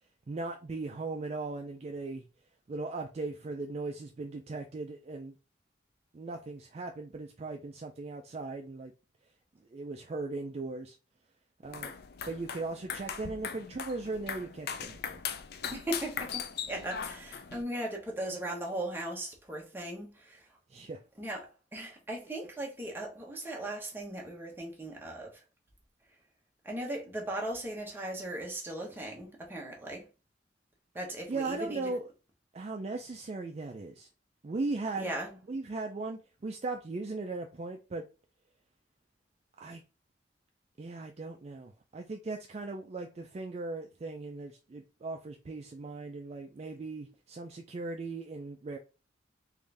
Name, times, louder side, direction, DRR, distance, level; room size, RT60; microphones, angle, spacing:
voice 1, 0.3-2.2 2.7-5.3 6.1-8.9 9.7-10.9 11.6-11.9 12.3-15.2 20.7-21.0 31.3-32.0 32.5-34.1 34.4-35.1 35.5-38.0 39.6-39.8 40.8-48.8, right 3 dB, 35° right, 0.3 m, -38 dB
sound 1, 11.6-17.6, left 7 dB, 55° left, 0.4 m, -39 dB
voice 2, 15.7-20.4 21.2-25.4 26.6-30.0 30.9-31.8 35.0-35.4, right 1 dB, 10° right, 0.9 m, -38 dB
3.6 x 2.6 x 3.2 m
head